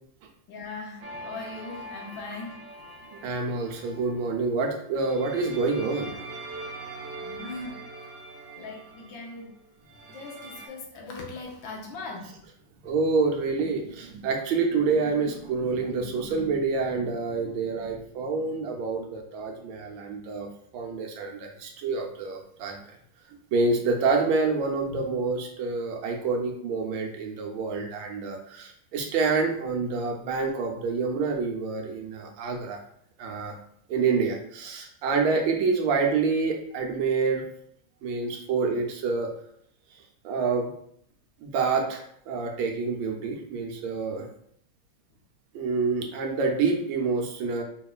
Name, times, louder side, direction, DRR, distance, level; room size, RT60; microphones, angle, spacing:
voice 1, 0.5-2.7 7.2-7.9 8.6-9.6 10.1-12.4 38.4-38.5, left 3 dB, 90° left, 0 dB, 1.6 m, -40 dB
sound 1, 1.0-4.3 5.0-10.7, right 2 dB, 70° right, 1.1 m, -42 dB
voice 2, 3.1-6.1 12.8-20.5 20.7-22.8 23.5-32.8 33.2-33.5 33.9-37.4 38.0-39.3 40.2-40.7 41.4-44.3 45.5-47.6, right 4 dB, 90° right, 2 dB, 1.4 m, -27 dB
4.2 x 3.0 x 2.3 m, 0.67 s
omnidirectional pair, 2.1 m